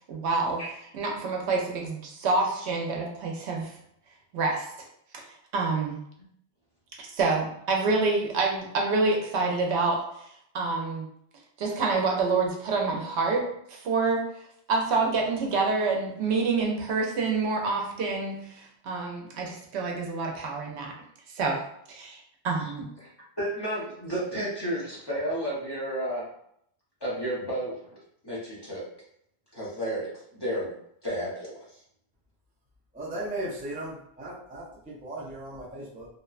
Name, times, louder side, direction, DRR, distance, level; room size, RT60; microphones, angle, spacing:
voice 1, 0.1-0.6 0.9-3.7 4.3-4.7 5.1-5.2 5.5-6.0 7.0-10.0 10.5-11.1 11.6-14.2 14.7-20.9 21.3-21.6 21.9-22.2 22.4-22.9, right 3 dB, 85° right, 0 dB, 0.9 m, -27 dB
voice 2, 23.4-26.2 27.0-27.8 28.2-28.8 29.5-30.7 31.0-31.6, right 1 dB, 25° left, -8 dB, 0.8 m, -32 dB
voice 3, 32.9-36.1, right 1 dB, 15° right, -6 dB, 0.3 m, -37 dB
2.8 x 2.1 x 2.3 m, 0.71 s
omnidirectional pair, 1.1 m